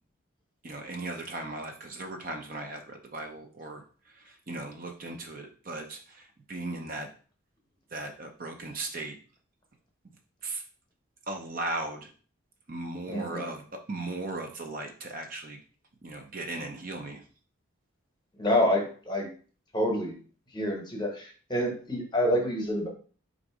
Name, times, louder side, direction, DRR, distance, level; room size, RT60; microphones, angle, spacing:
voice 1, 0.6-7.1 7.9-9.2 10.4-10.6 11.3-12.1 12.7-15.6 16.0-17.2, right 2 dB, 40° right, 4 dB, 0.5 m, -37 dB
voice 2, 13.1-13.5 18.4-19.3 19.7-20.1 20.5-22.9, left 1 dB, 20° left, 1 dB, 0.9 m, -27 dB
3.8 x 2.6 x 4.7 m, 0.40 s
head